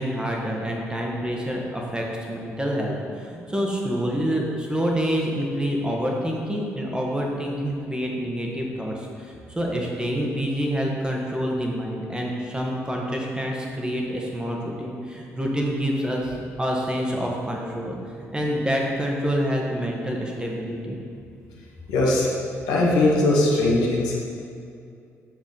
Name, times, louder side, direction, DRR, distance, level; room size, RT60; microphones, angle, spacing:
voice 1, 0.0-18.0 18.3-21.0, equal, 10° right, -1 dB, 1.6 m, -27 dB
voice 2, 21.9-22.3 22.7-24.1, left 2 dB, 65° left, -3 dB, 1.4 m, -20 dB
7.8 x 7.0 x 4.0 m, 2.4 s
figure-of-eight pair, 40°, 7 cm